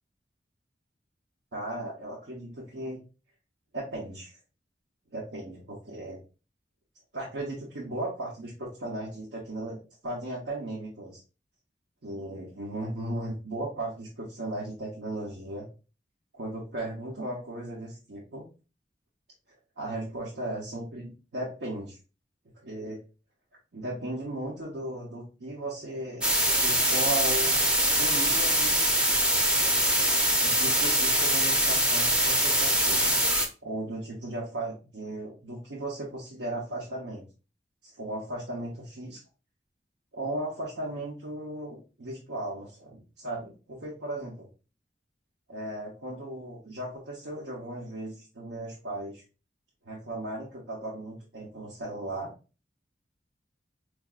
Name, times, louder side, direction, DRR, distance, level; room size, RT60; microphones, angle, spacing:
voice 1, 1.5-3.0 3.7-4.4 5.1-6.2 7.1-11.2 12.0-15.7 16.3-18.4 19.8-22.0 22.6-23.0 23.7-26.3 26.6-28.8 30.4-33.0 33.6-37.2 37.9-39.2 40.1-44.5 45.5-49.2 49.8-52.3, right 1 dB, 80° right, -4 dB, 0.9 m, -36 dB
sound 1, 26.2-33.5, right 1 dB, 5° right, 0.5 m, -23 dB
4.6 x 2.5 x 2.4 m, 0.32 s
head